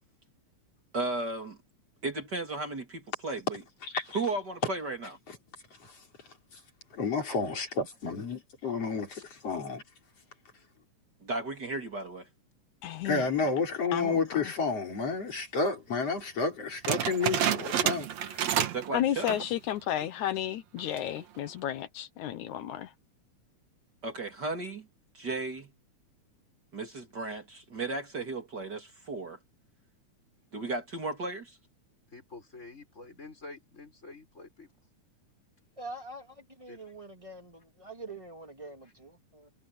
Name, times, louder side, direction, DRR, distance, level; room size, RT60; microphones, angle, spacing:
voice 1, 0.9-1.6 2.0-3.6 4.1-5.1 11.2-12.3 18.6-19.4 24.0-24.9 25.1-25.7 26.7-29.4 30.5-31.6, right 2 dB, 35° right, 2.9 m, -35 dB
voice 2, 3.8-4.2 5.3-5.4 5.8-5.9 6.9-9.8 13.0-18.5, left 4 dB, 50° left, 5.4 m, -31 dB
voice 3, 7.2-7.6 32.1-34.7 36.7-37.0 38.8-38.9, left 2 dB, 20° left, 7.1 m, -48 dB
voice 4, 12.8-13.3 13.9-14.5 18.9-22.9, left 11 dB, 75° left, 2.3 m, -32 dB
sound 1, 16.8-18.9 19.2-19.5 20.0-20.1 20.8-21.2, right 10 dB, 65° right, 2.5 m, -29 dB
voice 5, 35.8-39.5, right 2 dB, 10° right, 2.8 m, -45 dB
omnidirectional pair, 3.5 m